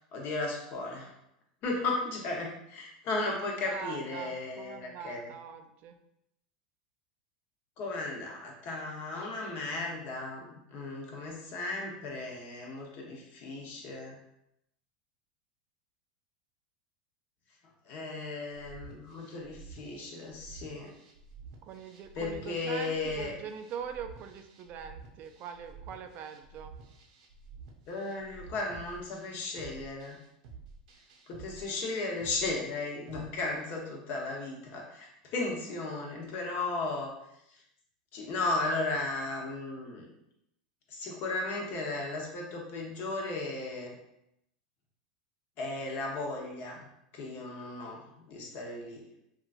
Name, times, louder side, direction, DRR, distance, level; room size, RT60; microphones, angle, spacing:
voice 1, 0.1-1.1 1.6-5.2 7.8-14.2 17.9-20.9 22.1-23.3 27.9-30.2 31.3-37.1 38.1-40.1 40.9-43.9 45.6-46.8 47.1-48.0 48.3-49.0, left 2 dB, 50° left, -1 dB, 0.9 m, -35 dB
voice 2, 3.3-6.0 21.6-26.7, right 7 dB, 45° right, 7 dB, 0.4 m, -42 dB
sound 1, 18.5-33.3, right 5 dB, 65° right, 0.7 m, -51 dB
3.0 x 2.4 x 2.4 m, 0.81 s
hypercardioid pair, 95°, 4 cm